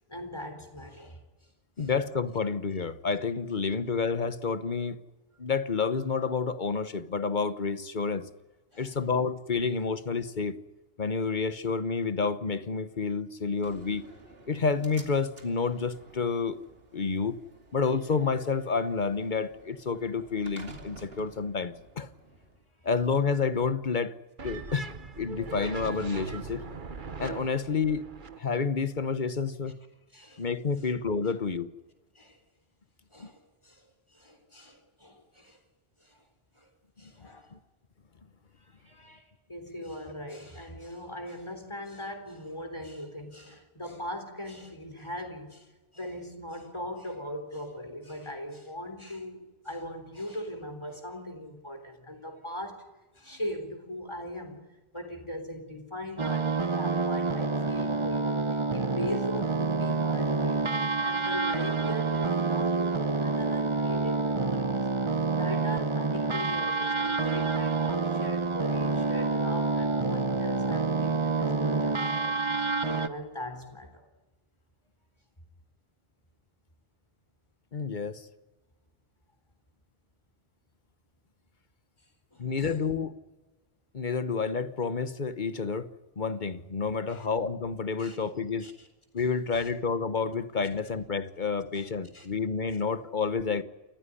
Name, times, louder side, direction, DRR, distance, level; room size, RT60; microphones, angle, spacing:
voice 1, 0.1-1.2 1.8-1.9 8.7-9.0 27.4-27.7 30.1-30.5 32.2-32.4 33.1-35.6 36.0-36.2 36.5-36.7 37.0-37.5 38.6-52.9 53.1-54.6 54.9-60.6 61.0-64.9 65.3-72.4 72.9-74.1 82.3-82.8 87.0-87.3 88.0-88.2 88.6-88.9 89.5-89.7 91.7-91.9 92.1-92.3, equal, 25° left, 3.8 m, -40 dB
voice 2, 1.8-5.0 5.4-8.3 8.8-10.6 11.0-14.0 14.5-16.6 16.9-17.3 17.7-22.1 22.8-24.1 24.4-24.9 25.2-26.6 27.2-28.1 28.4-29.8 30.4-31.7 33.2-33.3 77.7-78.2 82.4-83.1 83.9-85.9 86.2-88.7 89.1-93.6, left 5 dB, 50° left, 1.2 m, -29 dB
Slam, 13.6-22.6, right 2 dB, 70° right, 2.9 m, -52 dB
sound 1, 24.4-28.4, right 4 dB, 55° right, 1.3 m, -40 dB
sound 2, 56.2-73.1, right 3 dB, 30° right, 1.0 m, -28 dB
28.5 x 15.0 x 9.9 m
omnidirectional pair, 1.0 m